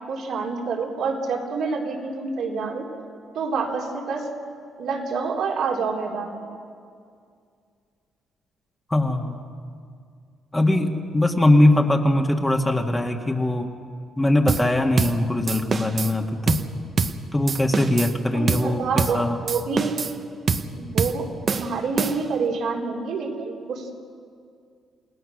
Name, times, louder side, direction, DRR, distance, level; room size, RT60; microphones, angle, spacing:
voice 1, 0.1-2.9 3.3-4.3 4.8-6.5 18.3-19.9 20.7-23.9, right 4 dB, 75° right, -1 dB, 3.8 m, -27 dB
voice 2, 8.9-9.4 10.5-13.7 14.2-16.6 17.3-19.4, left 1 dB, 15° left, 2 dB, 1.8 m, -21 dB
sound 1, 14.5-14.7 15.0-15.2 15.5-16.1 16.5-16.7 17.0-17.2 17.5-18.1 18.5-18.7 19.0-19.2 19.5-20.2 20.5-20.7 21.0-21.2 21.5-22.4, right 5 dB, 45° right, 1.2 m, -25 dB
29.0 x 17.5 x 6.5 m, 2.3 s
cardioid pair, 90°, 0 cm